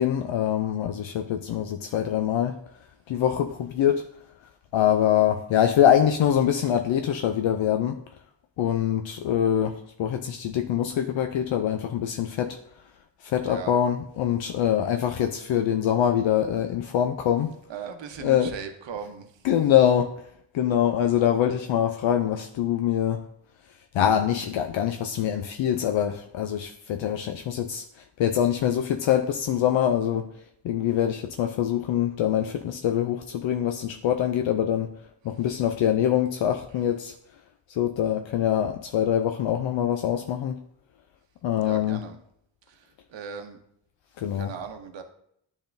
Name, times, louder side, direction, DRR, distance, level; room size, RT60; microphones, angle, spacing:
voice 1, 0.0-2.6 3.1-4.0 4.7-8.0 8.6-12.6 13.2-17.5 18.2-18.5 19.4-20.2 20.5-23.2 23.9-30.3 30.6-34.9 35.2-37.1 37.7-40.6 41.4-42.0 44.2-44.5, left 10 dB, 75° left, 5 dB, 0.5 m, -24 dB
voice 2, 13.4-13.7 17.7-19.5 41.6-42.2 42.7-43.6 44.3-45.0, right 6 dB, 65° right, 6 dB, 0.9 m, -38 dB
10.0 x 3.6 x 2.6 m, 0.72 s
cardioid pair, 100°, 47 cm